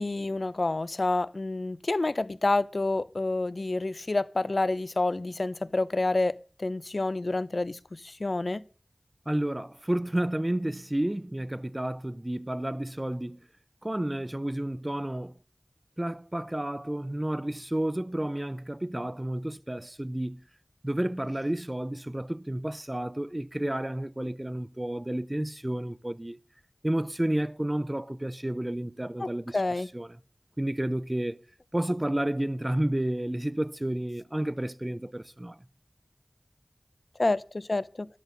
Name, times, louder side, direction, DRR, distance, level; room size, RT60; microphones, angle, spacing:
voice 1, 0.0-8.6 29.2-29.9 37.2-38.1, left 2 dB, 70° left, 0.6 m, -28 dB
voice 2, 9.3-13.4 13.8-15.3 16.0-20.4 20.8-26.4 26.8-29.6 29.9-30.1 30.6-31.4 31.7-35.6, right 1 dB, 25° right, 0.5 m, -31 dB
13.5 x 12.5 x 4.0 m
wide cardioid pair, 50°, 0 cm